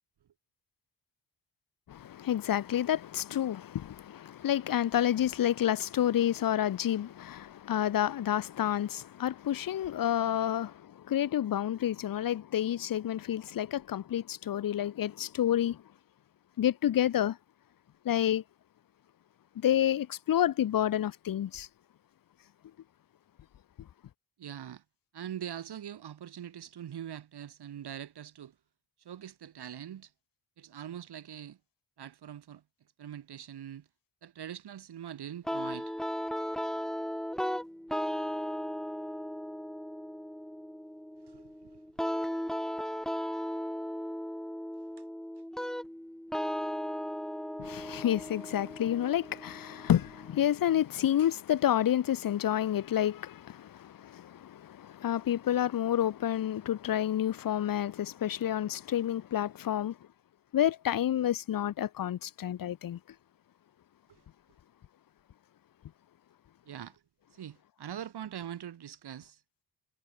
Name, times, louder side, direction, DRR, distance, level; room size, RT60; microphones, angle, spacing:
voice 1, 1.9-15.8 16.6-17.4 18.0-18.4 19.6-21.7 47.6-60.0 60.5-63.0, left 11 dB, 50° left, 0.8 m, -29 dB
voice 2, 24.4-24.8 25.1-28.5 29.0-30.1 30.6-31.6 32.0-32.6 33.0-33.9 34.2-35.9 41.2-41.8 64.1-64.2 66.7-67.0 67.3-69.4, right 9 dB, 65° right, 2.1 m, -43 dB
sound 1, 35.5-50.4, equal, ahead, 0.7 m, -36 dB
cardioid pair, 120°, 43 cm